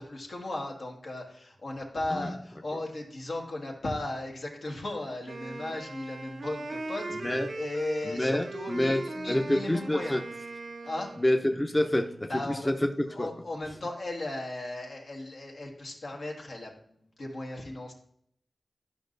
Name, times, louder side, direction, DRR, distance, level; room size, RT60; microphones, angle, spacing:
voice 1, 0.0-10.2 10.8-11.1 12.3-12.7 13.1-16.7 17.2-17.9, left 2 dB, 80° left, -1 dB, 1.4 m, -36 dB
Wind instrument woodwind instrument, 5.2-11.4, right 2 dB, 70° right, 0.7 m, -39 dB
voice 2, 8.0-9.0 9.3-10.2 11.2-13.3, left 1 dB, 25° left, 5 dB, 0.6 m, -27 dB
10.0 x 5.3 x 2.6 m, 0.68 s
cardioid pair, 45°, 0 cm